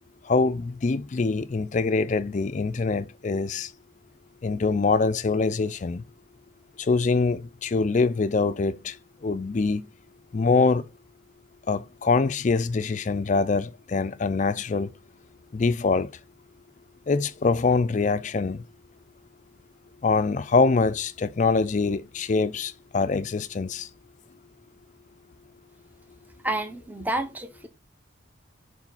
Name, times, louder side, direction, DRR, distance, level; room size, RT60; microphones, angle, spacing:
voice 1, 0.2-3.7 4.4-6.0 6.8-9.0 9.2-9.9 10.3-10.9 11.7-14.9 15.5-16.1 17.1-18.6 20.0-23.9, left 4 dB, 35° left, 0.4 m, -24 dB
voice 2, 26.4-27.7, right 1 dB, 10° right, 0.7 m, -29 dB
4.9 x 4.2 x 5.4 m
head